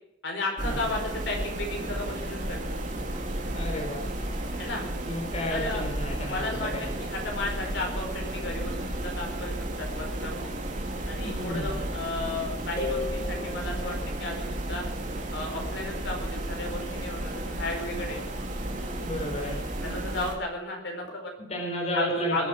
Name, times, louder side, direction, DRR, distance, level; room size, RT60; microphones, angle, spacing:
voice 1, 0.2-2.8 4.6-4.9 5.5-5.8 6.3-10.5 11.1-14.8 15.3-18.2 19.8-21.3 21.9-22.5, left 2 dB, 70° left, 1 dB, 4.7 m, -34 dB
sound 1, 0.6-20.3, right 1 dB, 40° right, 2.8 m, -33 dB
voice 2, 3.5-4.1 5.0-6.8 11.2-11.7 19.0-19.6 21.5-22.5, left 1 dB, 35° left, 0 dB, 4.0 m, -32 dB
sound 2, 12.8-14.3, left 4 dB, 15° left, 5.0 m, -35 dB
21.0 x 8.5 x 6.2 m, 0.84 s
head